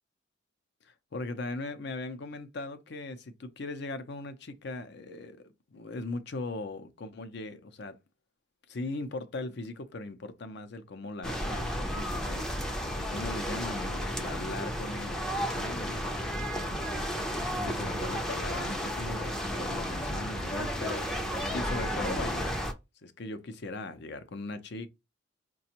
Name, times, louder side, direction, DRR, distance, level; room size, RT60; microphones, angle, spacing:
voice 1, 0.9-5.4 5.7-8.0 8.7-16.1 17.6-21.1 21.5-22.6 23.0-24.9, left 2 dB, 60° left, 0.6 m, -39 dB
sound 1, 11.2-22.7, equal, 5° left, 0.4 m, -33 dB
5.0 x 2.3 x 2.8 m
head